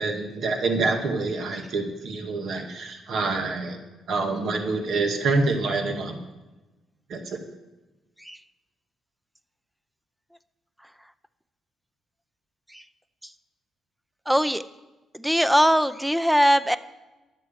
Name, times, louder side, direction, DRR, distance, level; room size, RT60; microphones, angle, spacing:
voice 1, 0.0-3.8 4.1-6.1 7.1-7.4, right 3 dB, 65° right, 4 dB, 1.9 m, -26 dB
voice 2, 14.3-14.6 15.1-16.8, equal, ahead, 13 dB, 0.6 m, -21 dB
11.5 x 7.9 x 7.6 m, 1.1 s
cardioid pair, 90°, 0 cm